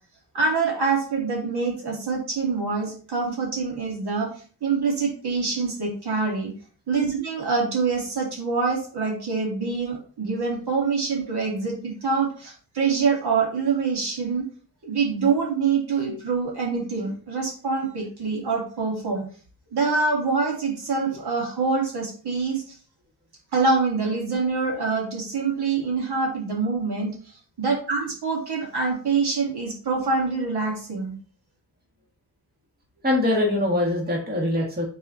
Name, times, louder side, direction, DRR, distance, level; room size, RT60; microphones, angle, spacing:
voice 1, 0.3-4.3 4.6-6.5 6.9-14.4 14.8-19.2 19.7-22.8 23.5-31.1, right 4 dB, 65° right, -1 dB, 2.7 m, -25 dB
voice 2, 33.0-34.8, left 1 dB, 20° right, -2 dB, 1.7 m, -23 dB
6.8 x 4.2 x 4.0 m, 0.40 s
wide cardioid pair, 175°, 42 cm